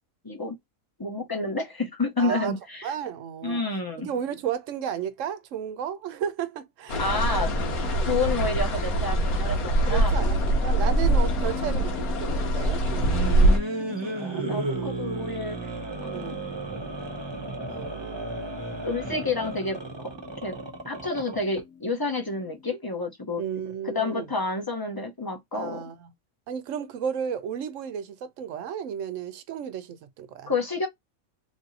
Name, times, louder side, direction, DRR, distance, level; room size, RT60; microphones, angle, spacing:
voice 1, 0.2-0.6 1.0-2.9 3.4-4.1 7.0-7.5 8.1-10.1 11.4-11.9 13.8-15.6 16.0-16.4 18.5-20.1 20.4-20.5 20.8-23.4 23.8-25.8 30.5-30.9, left 3 dB, 30° left, 0.4 m, -30 dB
voice 2, 2.2-2.5 2.8-3.6 4.0-7.0 7.9-8.2 9.8-13.6 14.7-15.1 16.1-16.4 17.7-18.3 23.4-24.3 25.5-26.1 26.5-30.5, right 8 dB, 65° right, 0.9 m, -33 dB
sound 1, 6.9-13.6, right 1 dB, 85° left, 1.5 m, -23 dB
Keyboard (musical), 10.1-22.7, left 7 dB, 60° left, 1.1 m, -43 dB
sound 2, 12.8-21.6, right 3 dB, 25° right, 0.6 m, -34 dB
3.3 x 2.6 x 4.0 m
omnidirectional pair, 1.5 m